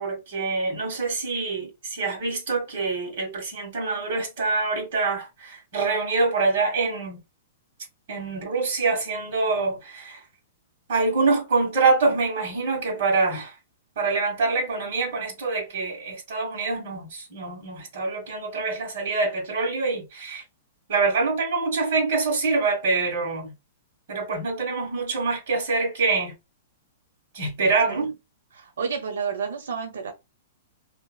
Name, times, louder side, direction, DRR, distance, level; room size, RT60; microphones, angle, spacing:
voice 1, 0.0-7.2 8.1-10.2 10.9-13.5 13.9-20.4 20.9-23.5 24.1-26.3 27.3-28.1, right 3 dB, 45° right, 1.6 m, -25 dB
voice 2, 28.5-30.1, right 6 dB, 90° right, 0.7 m, -30 dB
2.9 x 2.6 x 2.3 m
hypercardioid pair, 180°, 0 cm